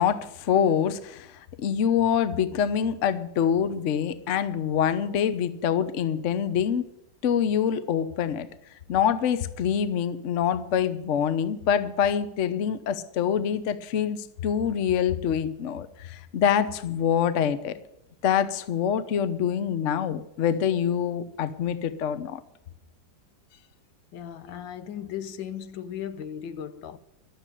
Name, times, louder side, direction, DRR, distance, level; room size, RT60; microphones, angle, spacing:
voice 1, 0.0-6.9 7.2-8.5 8.9-17.7 18.2-22.4 24.5-24.6, left 8 dB, 50° left, 1.0 m, -25 dB
voice 2, 24.1-27.0, left 9 dB, 85° left, 1.6 m, -36 dB
12.5 x 7.3 x 9.9 m
omnidirectional pair, 2.0 m